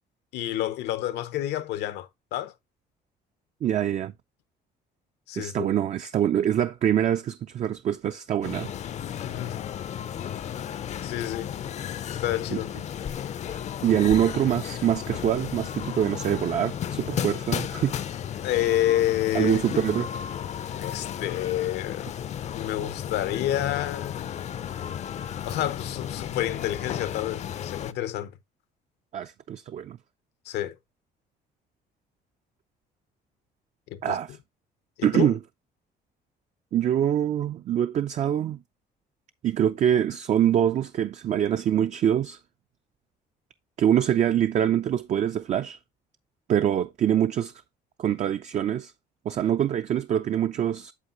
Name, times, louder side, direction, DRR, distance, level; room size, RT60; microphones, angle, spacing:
voice 1, 0.3-2.5 5.3-5.7 9.2-9.6 11.0-11.5 12.2-12.7 18.4-19.6 20.7-22.1 22.5-24.2 25.4-28.3 30.4-30.8 33.9-34.2 35.0-35.4, left 13 dB, 80° left, 0.8 m, -29 dB
voice 2, 3.6-4.1 5.4-8.7 12.5-12.6 13.5-17.9 19.3-20.1 29.1-30.0 34.0-34.4 35.0-35.4 36.7-38.6 39.4-42.4 43.8-45.8 46.5-47.5 48.0-48.9 49.3-50.9, right 10 dB, 45° right, 0.4 m, -24 dB
sound 1, 8.4-27.9, left 9 dB, 40° left, 0.5 m, -34 dB
8.3 x 7.2 x 2.5 m
cardioid pair, 110°, 17 cm